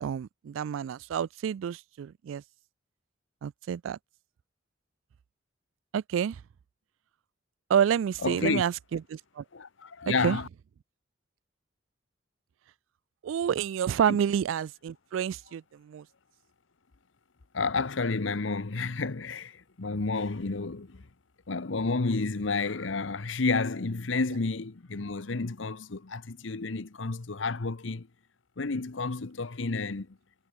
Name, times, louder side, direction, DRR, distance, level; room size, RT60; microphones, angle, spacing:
voice 1, 0.0-2.4 3.4-4.0 5.9-6.4 7.7-9.4 10.2-10.4 13.2-16.0, right 8 dB, 85° right, 0.3 m, -29 dB
voice 2, 8.2-8.6 9.5-10.5 14.1-14.2 17.5-21.1 21.5-28.1 28.6-30.2, left 3 dB, 80° left, 0.9 m, -30 dB
head